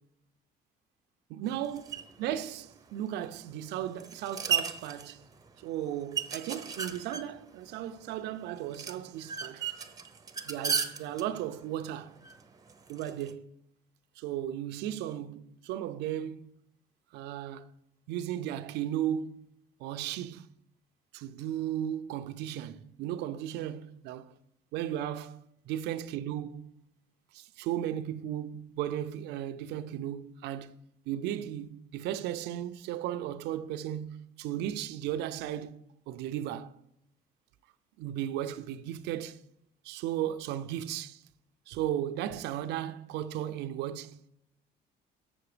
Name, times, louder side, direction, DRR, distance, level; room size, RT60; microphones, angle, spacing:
voice 1, 1.3-5.2 5.6-9.7 10.4-12.1 12.9-13.5 14.2-16.5 17.1-17.7 18.1-19.5 19.8-20.5 21.1-24.3 24.7-25.3 25.7-26.7 27.3-30.8 31.1-35.8 36.1-36.7 38.0-39.4 39.8-41.2 41.7-44.2, right 11 dB, 85° right, 0.6 m, -35 dB
sound 1, 1.4-13.3, right 6 dB, 20° right, 0.9 m, -37 dB
7.3 x 7.0 x 4.9 m
cardioid pair, 110°, 17 cm